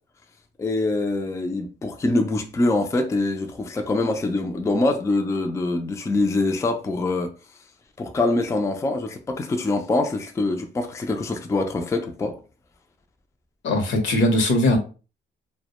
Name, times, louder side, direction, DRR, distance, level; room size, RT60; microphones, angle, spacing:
voice 1, 0.6-7.3 8.0-12.4, left 2 dB, 15° left, 0.3 m, -24 dB
voice 2, 13.6-14.8, left 1 dB, 70° left, 0.8 m, -20 dB
2.1 x 2.1 x 2.9 m
cardioid pair, 90°, 20 cm